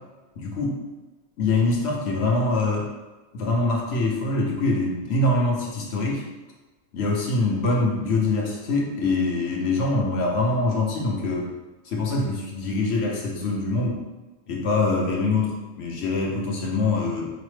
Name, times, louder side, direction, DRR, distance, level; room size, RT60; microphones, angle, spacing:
voice 1, 0.4-0.8 1.4-2.9 3.3-6.2 6.9-11.5 11.8-14.0 14.5-17.4, left 2 dB, 60° left, -1 dB, 0.9 m, -24 dB
4.8 x 2.0 x 3.1 m, 1.2 s
omnidirectional pair, 1.4 m